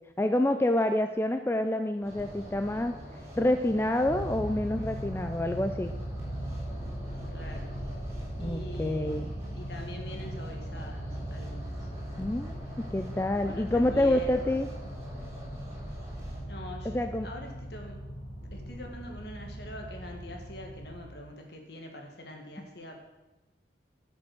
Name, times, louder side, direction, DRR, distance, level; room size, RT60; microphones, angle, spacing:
voice 1, 0.2-2.9 3.4-5.9 8.4-9.3 12.2-14.7 16.8-17.3, left 1 dB, 15° left, 7 dB, 0.4 m, -27 dB
sound 1, 2.0-16.4, equal, 15° right, 3.8 m, -44 dB
sound 2, 4.0-21.0, right 1 dB, 35° left, 4.2 m, -39 dB
voice 2, 7.3-7.8 8.4-9.3 9.5-11.9 13.4-14.6 16.4-18.0 18.5-23.0, left 1 dB, 65° left, 2 dB, 1.9 m, -44 dB
11.5 x 6.2 x 6.0 m, 1.0 s
head